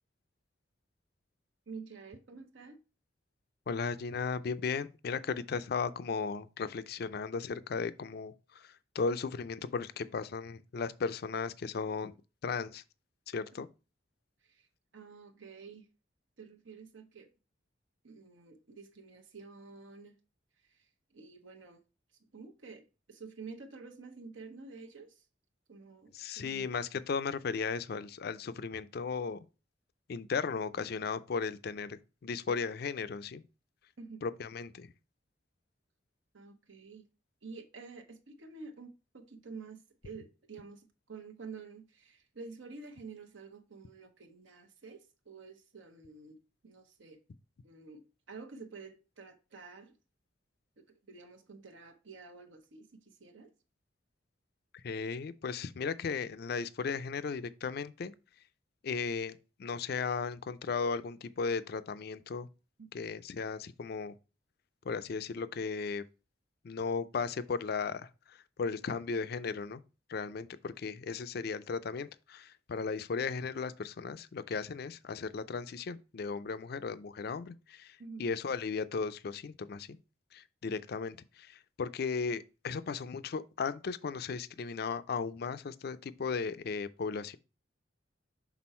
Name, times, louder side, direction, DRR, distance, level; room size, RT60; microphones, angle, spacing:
voice 1, 1.7-2.8 14.4-14.7 14.9-15.9 16.4-17.3 18.0-20.2 20.6-21.8 22.2-25.3 25.7-26.7 34.0-34.2 36.3-37.1 37.4-47.2 47.6-50.0 50.8-53.5 62.8-62.9 78.0-78.4, right 4 dB, 85° right, 0.9 m, -50 dB
voice 2, 3.7-12.1 12.4-12.8 13.3-13.7 26.1-29.4 30.1-33.4 34.2-34.9 54.8-58.1 58.8-62.5 62.9-64.1 64.9-66.0 66.6-69.8 70.1-80.0 80.3-87.4, left 5 dB, 55° left, 0.4 m, -36 dB
6.1 x 3.8 x 4.2 m
head